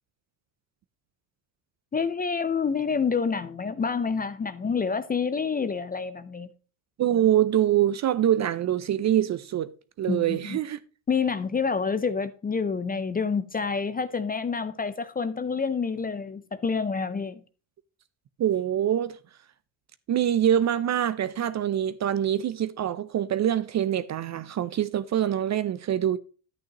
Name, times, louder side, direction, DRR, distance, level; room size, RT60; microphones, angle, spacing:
voice 1, 1.9-6.5 10.1-10.6 11.1-17.4, left 5 dB, 20° left, 0.5 m, -28 dB
voice 2, 7.0-9.7 10.0-10.8 18.4-19.2 20.1-26.2, right 11 dB, 35° right, 0.5 m, -24 dB
10.5 x 8.8 x 2.9 m
supercardioid pair, 90°, 49 cm